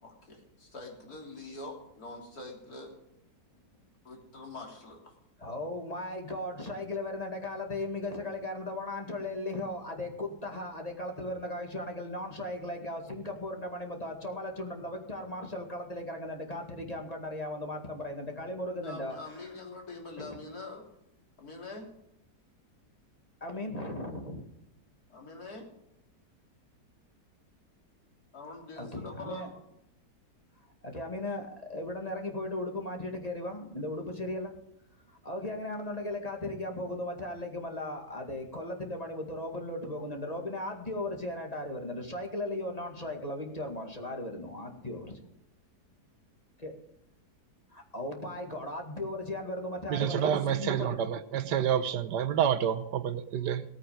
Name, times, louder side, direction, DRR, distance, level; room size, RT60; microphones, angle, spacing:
voice 1, 0.0-2.9 4.0-5.1 18.8-20.9 21.4-21.9 25.1-25.7 28.3-29.5, left 3 dB, 60° left, 3.9 m, -44 dB
voice 2, 5.4-19.5 20.2-20.4 23.4-24.4 28.8-29.5 30.8-34.5 35.2-45.2 46.6-46.7 47.7-50.9, left 1 dB, 20° left, 2.1 m, -37 dB
voice 3, 49.9-53.6, right 9 dB, 85° right, 1.5 m, -28 dB
18.0 x 8.9 x 5.2 m
omnidirectional pair, 1.8 m